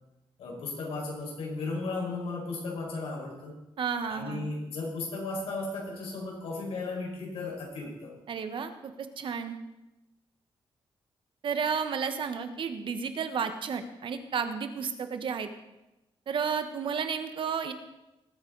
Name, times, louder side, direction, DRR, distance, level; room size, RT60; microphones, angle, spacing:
voice 1, 0.4-3.5 4.1-8.1, left 3 dB, 80° left, -2 dB, 5.2 m, -35 dB
voice 2, 3.8-4.5 8.3-9.6 11.4-15.5 16.3-17.7, right 6 dB, 60° right, 8 dB, 1.3 m, -32 dB
20.0 x 9.0 x 4.0 m, 0.97 s
cardioid pair, 105°, 10 cm